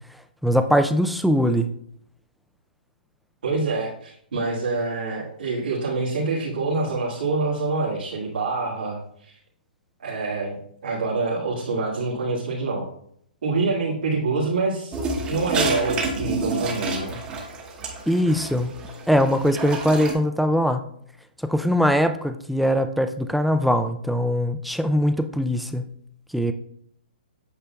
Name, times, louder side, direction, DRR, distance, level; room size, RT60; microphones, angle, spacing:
voice 1, 0.4-1.7 18.1-18.7 19.1-20.8 21.4-25.8 26.3-26.5, equal, ahead, 9 dB, 0.3 m, -21 dB
voice 2, 3.4-9.4 10.0-10.5 10.8-12.9 13.4-17.2, right 3 dB, 80° right, -6 dB, 1.9 m, -26 dB
sound 1, 14.9-20.1, right 3 dB, 15° right, 0.9 m, -29 dB
8.2 x 5.6 x 2.3 m, 0.68 s
hypercardioid pair, 150°, 5 cm